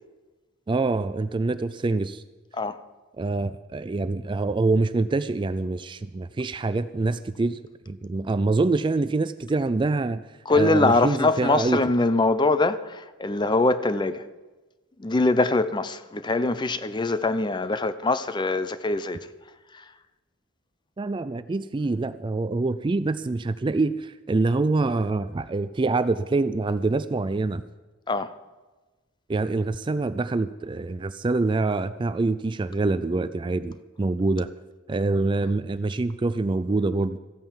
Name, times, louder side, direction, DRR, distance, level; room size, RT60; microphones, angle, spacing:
voice 1, 0.7-2.2 3.2-7.6 7.9-10.2 10.5-11.8 21.0-27.6 29.3-34.5 34.9-37.2, right 3 dB, 25° right, 0.3 m, -25 dB
voice 2, 10.5-14.2 15.0-19.3 19.7-19.8 28.1-28.3, left 2 dB, 20° left, 0.5 m, -23 dB
14.0 x 8.9 x 7.3 m
head